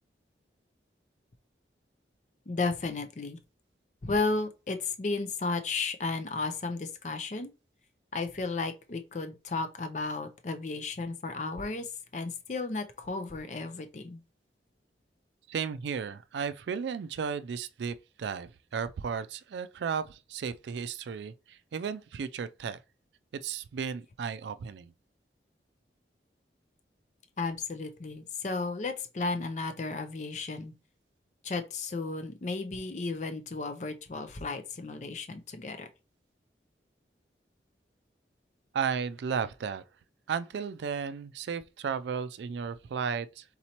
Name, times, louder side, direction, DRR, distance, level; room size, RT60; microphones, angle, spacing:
voice 1, 2.5-3.4 4.0-7.5 8.1-14.2 27.4-30.7 31.4-35.9, left 3 dB, 40° left, 0.5 m, -34 dB
voice 2, 15.5-22.8 23.4-24.9 38.7-39.8 40.3-43.4, right 6 dB, 80° right, 0.3 m, -34 dB
4.3 x 3.9 x 2.9 m
head